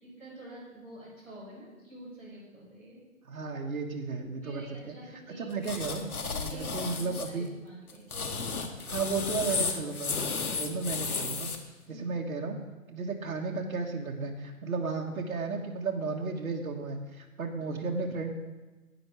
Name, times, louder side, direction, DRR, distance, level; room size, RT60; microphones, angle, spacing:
voice 1, 0.0-3.0 4.4-5.7 6.2-9.0 10.3-10.5 11.9-12.0, right 1 dB, 5° left, -15 dB, 3.5 m, -47 dB
voice 2, 3.2-4.9 5.4-6.0 6.4-7.5 8.9-10.1 10.6-11.5 11.9-12.6 12.9-18.3, right 4 dB, 70° right, 1 dB, 1.6 m, -34 dB
sound 1, 5.6-7.3 7.9-11.6, left 5 dB, 85° left, 1.6 m, -33 dB
11.0 x 9.4 x 4.7 m, 1.2 s
hypercardioid pair, 180°, 43 cm